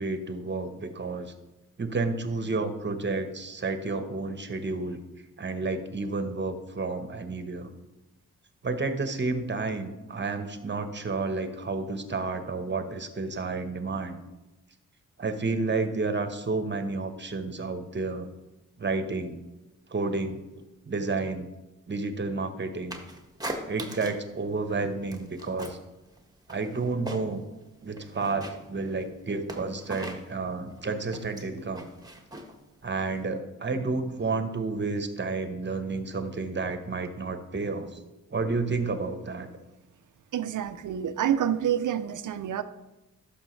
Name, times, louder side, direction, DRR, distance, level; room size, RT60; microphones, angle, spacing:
voice 1, 0.0-1.3 1.8-5.0 5.4-7.7 8.6-14.2 15.2-18.3 18.8-19.4 19.9-21.5 21.9-23.0 23.7-25.8 26.5-27.4 27.8-31.9 32.8-38.0 38.3-39.5, right 3 dB, 30° right, 8 dB, 1.1 m, -31 dB
sound 1, 22.9-24.3 24.6-25.9 26.2-27.5 27.8-33.2, right 1 dB, 10° right, 1.5 m, -40 dB
voice 2, 40.3-42.6, right 9 dB, 60° right, 12 dB, 0.6 m, -28 dB
11.5 x 6.0 x 3.2 m, 1.0 s
supercardioid pair, 50°, 34 cm